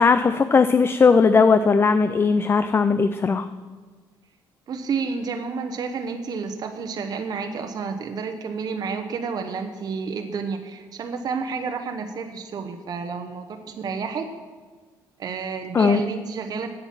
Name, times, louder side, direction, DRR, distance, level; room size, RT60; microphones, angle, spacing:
voice 1, 0.0-3.5 15.7-16.0, left 5 dB, 30° left, 11 dB, 0.4 m, -18 dB
voice 2, 4.7-13.5 13.8-14.3 15.2-16.7, right 5 dB, 50° right, 5 dB, 0.9 m, -30 dB
8.2 x 7.9 x 7.5 m, 1.4 s
cardioid pair, 100°, 8 cm